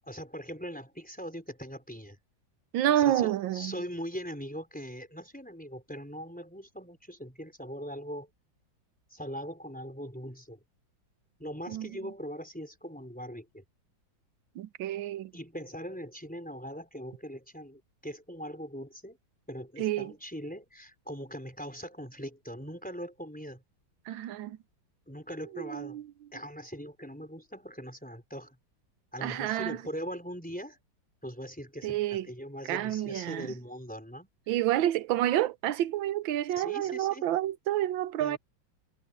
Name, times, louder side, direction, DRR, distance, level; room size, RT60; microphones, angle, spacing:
voice 1, 0.0-2.2 3.0-8.3 9.1-10.6 11.4-13.6 15.3-19.2 19.5-23.6 25.1-26.0 26.3-28.6 29.1-30.8 31.2-34.6 36.6-37.3 38.2-38.4, equal, 5° left, 4.4 m, -41 dB
voice 2, 2.7-3.7 11.7-11.9 14.6-15.3 19.8-20.1 24.1-24.6 25.5-26.0 29.2-29.8 31.8-32.3 32.7-33.5 34.5-38.4, right 12 dB, 90° right, 1.5 m, -29 dB
omnidirectional pair, 2.1 m